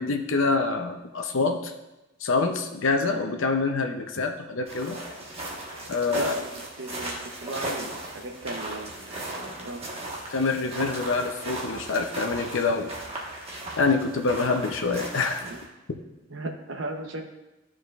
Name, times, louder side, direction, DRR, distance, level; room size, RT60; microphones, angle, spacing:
voice 1, 0.0-1.7 2.2-5.0 5.9-6.4 10.3-12.9 13.8-15.4, left 4 dB, 75° left, 4 dB, 0.7 m, -26 dB
sound 1, 4.7-15.7, right 1 dB, 30° right, 1.3 m, -37 dB
voice 2, 6.1-9.8 15.4-15.6 16.3-17.2, right 2 dB, 65° right, 4 dB, 0.9 m, -37 dB
12.5 x 4.9 x 2.4 m, 1.0 s
head